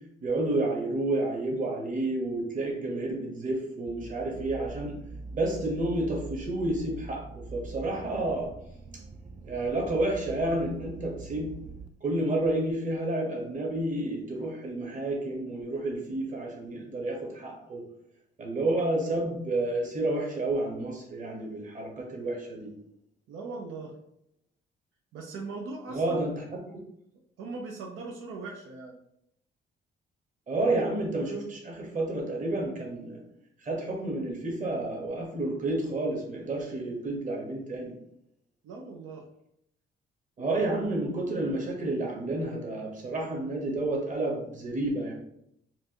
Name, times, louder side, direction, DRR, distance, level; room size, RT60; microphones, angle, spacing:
voice 1, 0.2-5.0 5.3-8.5 9.4-11.6 12.0-17.8 18.4-22.7 25.9-26.3 30.5-33.2 33.6-37.9 40.4-45.1, right 2 dB, 40° right, 0 dB, 1.3 m, -30 dB
sound 1, 3.9-11.9, right 3 dB, 25° right, 0.4 m, -43 dB
voice 2, 23.3-23.9 25.1-26.2 27.4-29.0 38.6-39.2, right 3 dB, 85° right, 0 dB, 0.6 m, -39 dB
4.5 x 2.5 x 2.9 m, 0.75 s
cardioid pair, 90°, 20 cm